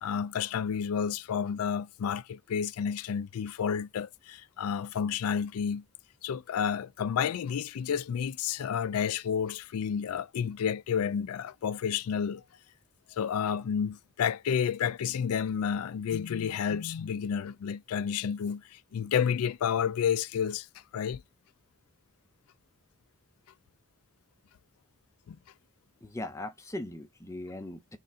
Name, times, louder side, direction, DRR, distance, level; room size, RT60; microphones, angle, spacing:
voice 1, 0.0-5.8 6.2-12.4 13.1-20.7 20.9-21.2 25.3-25.4, left 7 dB, 85° left, 0.4 m, -30 dB
voice 2, 26.0-28.0, left 1 dB, 15° left, 0.5 m, -39 dB
4.1 x 2.5 x 3.5 m
head